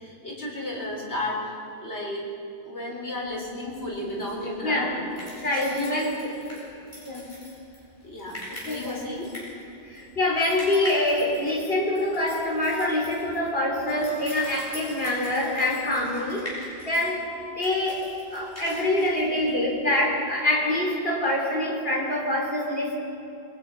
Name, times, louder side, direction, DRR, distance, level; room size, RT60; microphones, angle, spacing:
voice 1, 0.0-2.2 2.6-5.1 5.6-6.0 8.0-9.3 13.9-14.0, left 1 dB, 80° left, -3 dB, 4.8 m, -33 dB
sound 1, 3.3-20.0, equal, 45° left, 8.4 m, -42 dB
voice 2, 4.6-5.0 5.4-6.7 7.0-7.4 8.6-9.0 9.8-17.2 17.6-18.0 18.3-22.9, left 1 dB, 60° left, -3 dB, 4.9 m, -25 dB
28.5 x 23.0 x 5.8 m, 2.7 s
omnidirectional pair, 1.1 m